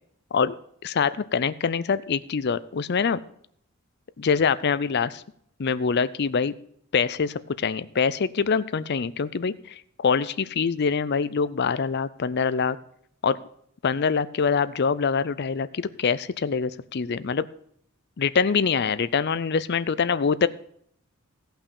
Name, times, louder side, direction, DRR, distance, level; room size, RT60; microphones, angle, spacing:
voice 1, 0.8-3.2 4.2-5.2 5.6-6.5 6.9-12.8 13.2-13.4 13.8-17.5 18.2-20.5, left 5 dB, 50° left, 16 dB, 0.5 m, -24 dB
15.5 x 5.7 x 6.9 m, 0.67 s
head